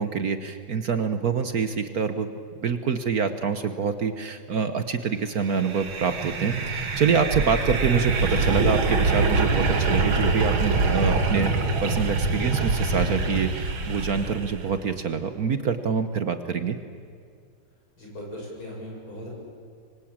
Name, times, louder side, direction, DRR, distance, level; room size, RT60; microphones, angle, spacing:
voice 1, 0.0-2.3 2.6-11.5 11.8-16.8, right 5 dB, 50° right, 10 dB, 1.4 m, -26 dB
sound 1, 5.5-14.7, right 3 dB, 70° right, 2.7 m, -24 dB
voice 2, 18.0-19.3, equal, 75° left, -2 dB, 8.4 m, -38 dB
26.0 x 24.0 x 8.8 m, 2.3 s
omnidirectional pair, 2.3 m